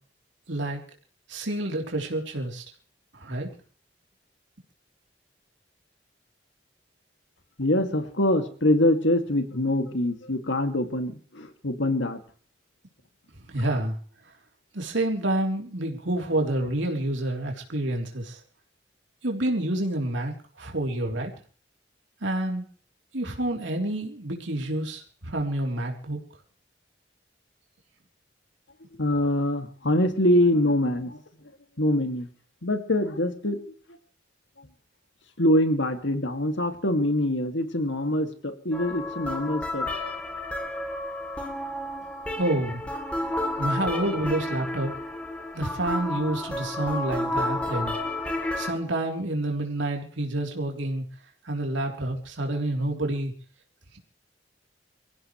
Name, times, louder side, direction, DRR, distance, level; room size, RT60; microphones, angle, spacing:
voice 1, 0.5-0.8 1.3-2.6 3.1-3.5 13.5-14.0 14.7-18.4 19.2-21.3 22.2-22.6 23.1-26.2 42.4-42.8 43.6-44.9 45.5-48.0 48.6-51.0 51.4-53.3, right 1 dB, 85° right, 2 dB, 3.6 m, -28 dB
voice 2, 7.6-12.2 29.0-31.2 31.8-32.3 32.6-33.6 34.6-34.7 35.4-39.9, left 1 dB, 85° left, 7 dB, 2.4 m, -24 dB
sound 1, 38.7-48.7, left 1 dB, 5° left, 3.1 m, -31 dB
25.5 x 16.0 x 3.3 m, 0.42 s
head